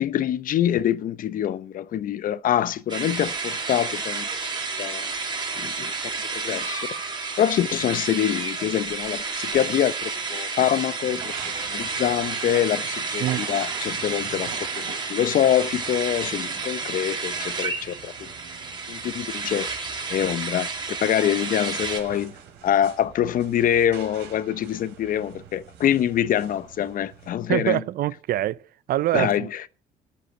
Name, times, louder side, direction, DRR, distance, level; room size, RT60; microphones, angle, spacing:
voice 1, 0.0-4.3 4.8-5.1 5.6-5.9 6.3-6.9 7.4-11.3 11.7-18.3 18.9-19.7 20.1-20.7 21.0-22.3 22.6-27.8 29.1-29.5, left 10 dB, 55° left, 0.7 m, -25 dB
sound 1, 2.9-22.0, right 4 dB, 25° right, 2.5 m, -31 dB
sound 2, 11.0-27.3, right 8 dB, 85° right, 3.8 m, -44 dB
voice 2, 27.5-28.6 28.9-29.7, right 13 dB, 60° right, 0.5 m, -24 dB
10.0 x 9.0 x 7.9 m
cardioid pair, 110°, 17 cm